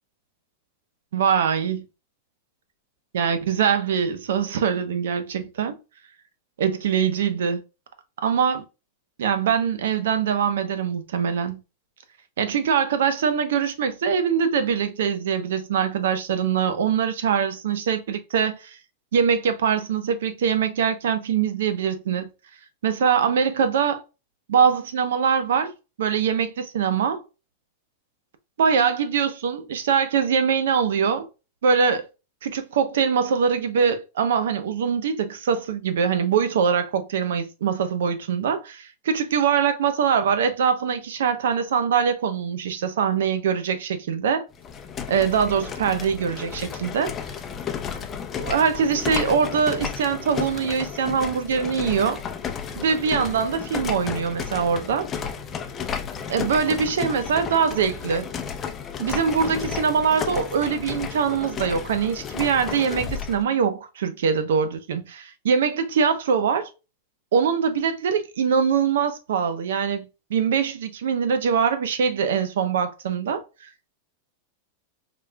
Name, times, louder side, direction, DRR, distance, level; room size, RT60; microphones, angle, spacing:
voice 1, 1.1-1.8 3.1-5.8 6.6-7.6 8.2-8.6 9.2-11.6 12.4-18.8 19.1-22.3 22.8-24.0 24.5-25.7 26.0-27.2 28.6-31.3 31.6-32.1 32.4-44.5 45.1-47.1 48.4-52.2 52.8-55.1 56.3-58.3 59.0-66.7 67.3-73.4, right 7 dB, 80° right, 0.8 m, -23 dB
sound 1, 44.5-63.4, left 7 dB, 25° left, 0.6 m, -33 dB
4.3 x 3.2 x 2.2 m
hypercardioid pair, 130°, 0 cm